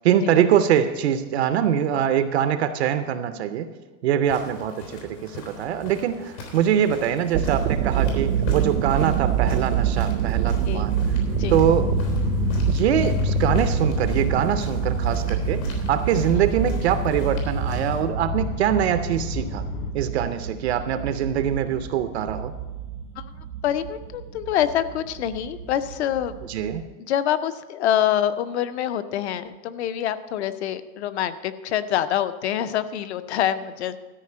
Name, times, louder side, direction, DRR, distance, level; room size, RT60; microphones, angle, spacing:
voice 1, 0.0-3.7 4.0-10.9 11.5-11.9 12.7-19.6 19.9-22.5 26.4-26.8, right 9 dB, 45° right, 10 dB, 0.5 m, -23 dB
sound 1, 4.2-18.0, left 2 dB, 90° left, 3.6 m, -40 dB
sound 2, 7.3-26.8, right 9 dB, 75° right, 0.9 m, -27 dB
sound 3, 11.3-19.9, left 9 dB, 65° left, 2.0 m, -30 dB
voice 2, 23.6-26.4 27.1-34.0, left 10 dB, 45° left, 13 dB, 0.5 m, -26 dB
13.0 x 5.0 x 8.4 m, 1.3 s
supercardioid pair, 175°, 48 cm